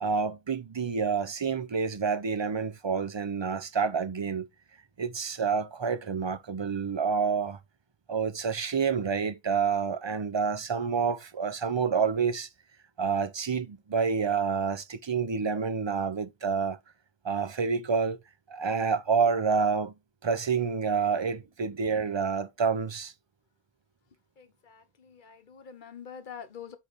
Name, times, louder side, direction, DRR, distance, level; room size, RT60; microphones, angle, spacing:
voice 1, 0.0-4.5 5.0-7.6 8.1-12.5 13.0-16.8 17.2-18.2 18.5-19.9 20.2-23.1, right 5 dB, 35° right, 0.4 m, -28 dB
voice 2, 24.4-26.8, left 7 dB, 50° left, 1.1 m, -45 dB
8.3 x 3.3 x 4.0 m
omnidirectional pair, 1.1 m